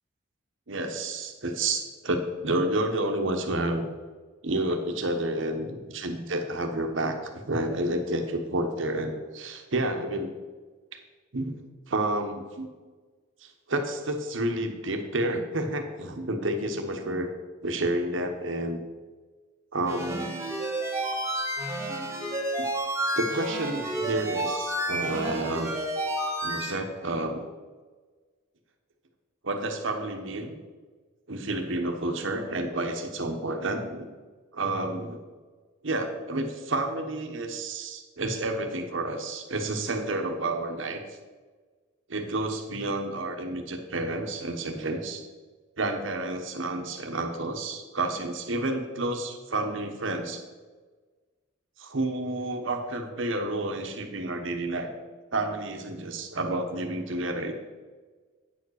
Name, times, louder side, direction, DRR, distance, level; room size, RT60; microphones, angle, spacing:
voice 1, 0.7-3.9 4.4-7.2 7.5-10.3 11.3-11.6 11.9-12.7 13.4-17.3 17.6-18.8 19.7-20.4 22.6-22.7 23.1-25.7 26.4-27.4 29.4-30.6 31.3-34.1 34.5-35.2 35.8-41.0 42.1-45.2 45.8-50.4 51.8-54.9 55.3-57.5, right 2 dB, 65° right, 5 dB, 1.1 m, -30 dB
sound 1, 19.9-26.7, right 1 dB, 15° right, 1.5 m, -30 dB
9.1 x 4.9 x 6.4 m, 1.4 s
head